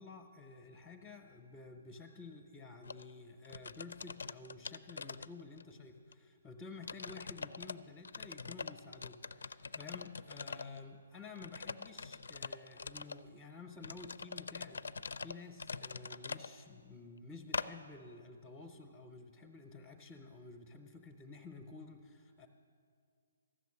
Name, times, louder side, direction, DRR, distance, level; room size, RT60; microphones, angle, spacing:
voice 1, 0.0-22.5, left 4 dB, 10° left, 4 dB, 0.7 m, -52 dB
sound 1, 2.8-3.0 3.4-5.7 6.1-6.2 6.8-7.7 8.0-10.8 11.3-13.2 13.8-16.5 17.5-17.7, left 5 dB, 85° left, 0.4 m, -43 dB
14.0 x 6.9 x 9.6 m, 2.2 s
hypercardioid pair, 160°, 0 cm